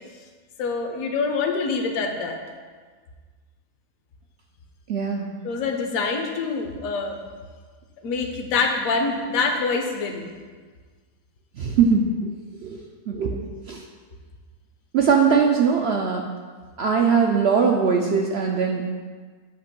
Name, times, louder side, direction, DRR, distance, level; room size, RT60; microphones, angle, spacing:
voice 1, 0.6-2.4 5.4-7.2 8.0-10.3, left 4 dB, 65° left, 3 dB, 1.1 m, -25 dB
voice 2, 4.9-5.3 11.6-12.1 12.6-12.8 13.1-13.8 14.9-16.2 16.8-18.8, right 6 dB, 70° right, 1 dB, 0.6 m, -21 dB
8.5 x 2.9 x 5.9 m, 1.5 s
omnidirectional pair, 1.6 m